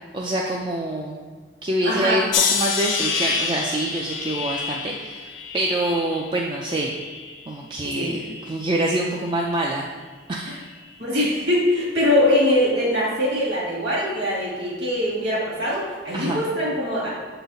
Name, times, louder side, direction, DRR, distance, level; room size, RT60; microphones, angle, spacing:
voice 1, 0.1-1.2 1.6-5.3 5.5-7.0 7.5-9.9 10.3-10.7 16.1-16.4, right 1 dB, 25° right, -1 dB, 0.3 m, -25 dB
voice 2, 1.8-2.2 7.8-8.1 10.5-10.6 11.0-17.1, left 1 dB, 55° right, -4 dB, 1.9 m, -22 dB
sound 1, 2.3-7.5 7.9-8.6 9.3-9.6, left 6 dB, 60° left, 0.7 m, -28 dB
6.8 x 3.9 x 4.0 m, 1.5 s
head